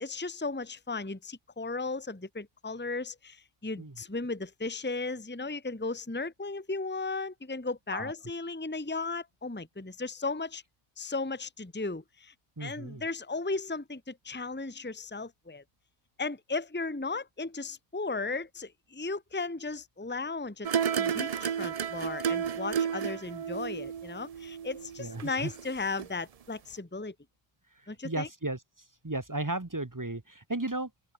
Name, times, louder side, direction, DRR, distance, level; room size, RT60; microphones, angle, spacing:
voice 1, 0.0-10.6 11.0-12.3 12.6-15.6 16.2-20.7 20.9-27.1 27.9-28.3, left 3 dB, 10° left, 1.5 m, -36 dB
voice 2, 12.6-13.0 25.0-25.5 28.0-28.6 29.0-31.1, right 2 dB, 15° right, 1.0 m, -35 dB
sound 1, 20.6-25.7 26.0-26.1, right 8 dB, 75° right, 0.3 m, -32 dB
open air
omnidirectional pair, 1.4 m